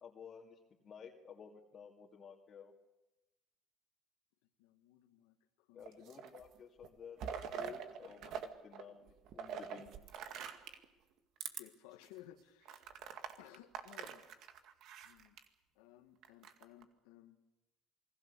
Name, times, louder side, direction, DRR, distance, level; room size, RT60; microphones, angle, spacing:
voice 1, 0.0-2.7 5.7-9.9, left 6 dB, 40° left, -2 dB, 2.5 m, -54 dB
voice 2, 4.6-6.1 11.5-12.9 13.4-14.2 15.0-15.4 15.8-17.4, left 13 dB, 80° left, 7 dB, 1.7 m, -59 dB
sound 1, 5.8-6.5 6.8-8.5 8.7-10.9 11.4-11.6 12.1-12.2 12.7-15.4 16.2-16.8, right 7 dB, 60° right, 2.2 m, -45 dB
28.0 x 20.5 x 6.9 m, 1.0 s
supercardioid pair, 85°, 0 cm